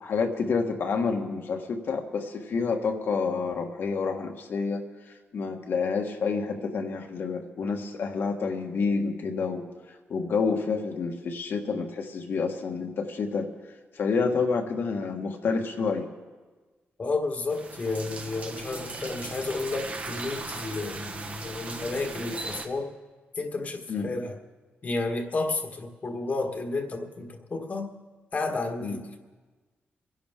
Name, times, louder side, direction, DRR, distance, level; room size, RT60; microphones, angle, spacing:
voice 1, 0.0-4.8 5.3-9.7 10.1-13.5 13.9-16.1 23.9-24.1 28.8-29.0, left 5 dB, 65° left, 3 dB, 1.5 m, -28 dB
voice 2, 17.0-22.9 23.3-24.4 24.8-27.9 28.3-29.1, left 3 dB, 40° left, 4 dB, 1.4 m, -31 dB
sound 1, 17.5-22.7, right 3 dB, 35° right, 1.2 m, -38 dB
25.5 x 11.0 x 3.6 m, 1.3 s
wide cardioid pair, 120°, 4 cm